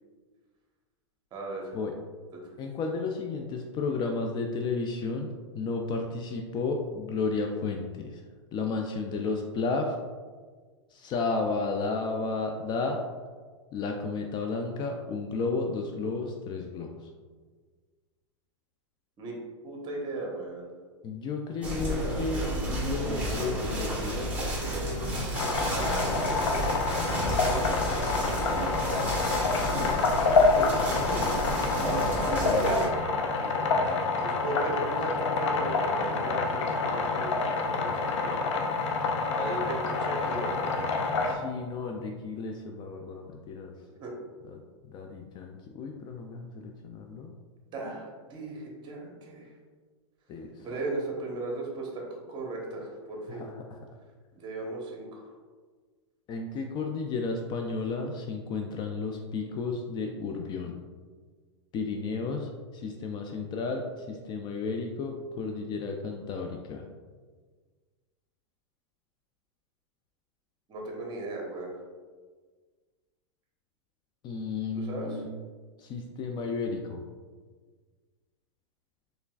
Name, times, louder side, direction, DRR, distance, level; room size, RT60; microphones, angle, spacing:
voice 1, 1.3-1.7 2.3-2.4 19.2-19.4 19.6-20.7 26.2-26.7 28.4-29.8 31.7-32.9 34.2-38.4 39.4-40.6 44.0-44.1 47.7-49.5 50.6-53.5 54.3-55.3 70.7-71.7 74.7-75.2, right 2 dB, 30° right, -1 dB, 1.1 m, -37 dB
voice 2, 2.6-8.2 8.5-10.0 10.9-13.0 13.7-17.1 21.0-22.4 22.7-24.3 31.7-32.6 33.4-34.1 41.2-43.7 44.5-44.6 44.9-47.3 50.3-50.7 53.3-53.8 56.3-60.8 61.7-66.9 74.2-75.3 75.8-77.0, left 4 dB, 30° left, 3 dB, 0.3 m, -33 dB
sound 1, 21.6-32.9, right 1 dB, 10° right, 1.3 m, -31 dB
sound 2, 25.3-41.3, left 4 dB, 75° left, 0.6 m, -27 dB
4.4 x 3.3 x 2.4 m, 1.5 s
hypercardioid pair, 115°, 15 cm